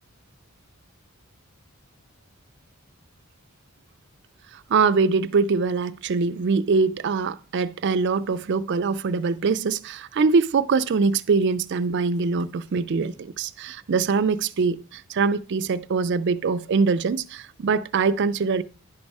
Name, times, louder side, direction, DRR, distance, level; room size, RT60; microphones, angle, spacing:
voice 1, 4.7-18.6, right 4 dB, 55° right, 0.4 m, -23 dB
10.5 x 5.3 x 4.7 m
head